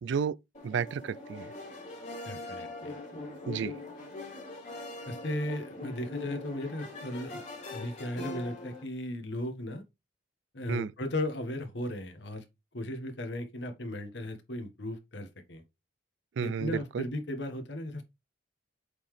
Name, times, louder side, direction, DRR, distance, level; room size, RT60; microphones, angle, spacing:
voice 1, 0.0-0.4 0.6-1.5 3.5-3.8 10.7-10.9 16.4-17.0, right 6 dB, 65° right, 0.3 m, -32 dB
sound 1, 0.5-8.8, left 2 dB, 40° left, 3.1 m, -42 dB
voice 2, 2.2-2.9 5.1-7.4 7.7-9.8 10.5-12.4 12.7-15.6 16.4-18.0, left 1 dB, 60° left, 1.4 m, -36 dB
8.0 x 4.0 x 3.3 m
head